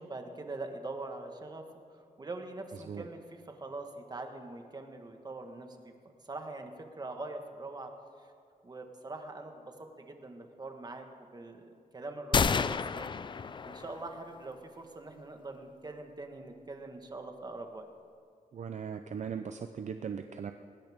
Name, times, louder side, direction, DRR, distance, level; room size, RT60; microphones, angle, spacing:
voice 1, 0.0-1.6 1.9-5.9 6.3-6.7 7.0-7.9 8.6-11.0 11.3-13.1 13.6-17.9, right 2 dB, 30° right, 4 dB, 1.5 m, -43 dB
sound 1, 12.3-14.2, left 6 dB, 35° left, 0.4 m, -30 dB
voice 2, 18.5-20.5, right 7 dB, 55° right, 7 dB, 0.6 m, -38 dB
20.0 x 19.5 x 3.6 m, 2.4 s
wide cardioid pair, 135°, 14 cm